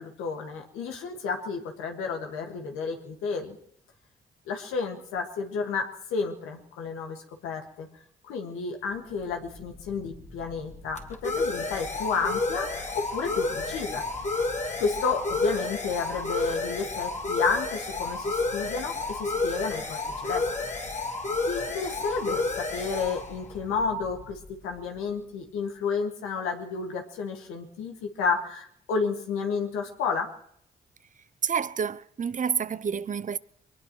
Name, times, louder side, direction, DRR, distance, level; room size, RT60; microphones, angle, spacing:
voice 1, 0.0-3.6 4.5-7.9 8.3-14.0 14.8-20.4 21.5-30.3, left 5 dB, 85° left, 1.8 m, -31 dB
sound 1, 9.3-24.7, left 3 dB, 35° left, 2.4 m, -31 dB
voice 2, 31.4-33.4, right 6 dB, 40° right, 0.6 m, -29 dB
22.5 x 19.5 x 3.1 m
supercardioid pair, 50°, 21 cm